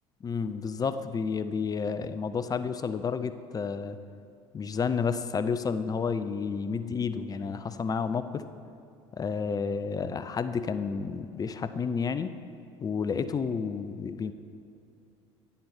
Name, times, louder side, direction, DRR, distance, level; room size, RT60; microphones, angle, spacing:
voice 1, 0.2-4.0 4.5-8.4 9.2-12.3 12.8-14.3, left 5 dB, 25° left, 12 dB, 0.4 m, -30 dB
9.3 x 7.0 x 4.1 m, 2.7 s
hypercardioid pair, 65°, 15 cm